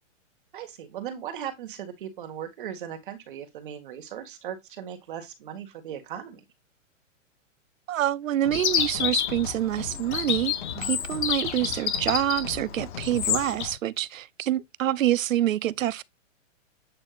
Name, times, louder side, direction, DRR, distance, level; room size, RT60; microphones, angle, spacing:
voice 1, 0.5-6.4 10.7-10.9, right 9 dB, 40° right, 1.6 m, -38 dB
voice 2, 7.9-10.5 10.8-16.0, right 12 dB, 85° right, 0.7 m, -26 dB
sound 1, 8.4-13.8, left 9 dB, 40° left, 0.6 m, -40 dB
Chirp tweet, 8.5-13.6, left 9 dB, 60° left, 1.8 m, -29 dB
8.6 x 4.4 x 2.4 m
hypercardioid pair, 175°, 38 cm